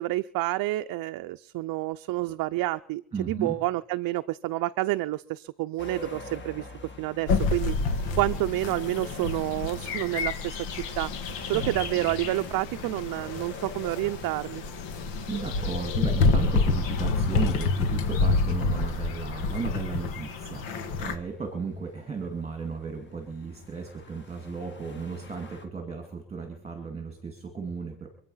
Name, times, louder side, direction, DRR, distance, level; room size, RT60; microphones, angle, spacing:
voice 1, 0.0-6.7 7.0-7.7 8.2-11.1 11.5-14.6, right 17 dB, 55° right, 9 dB, 0.5 m, -29 dB
voice 2, 3.1-3.6 11.5-12.1 15.3-28.1, right 5 dB, 15° right, 3 dB, 2.3 m, -35 dB
sound 1, 5.8-25.7, left 3 dB, 25° left, 1.8 m, -46 dB
sound 2, 7.3-21.1, left 3 dB, 85° left, 2.1 m, -28 dB
25.5 x 8.7 x 5.6 m, 0.66 s
cardioid pair, 155°, 43 cm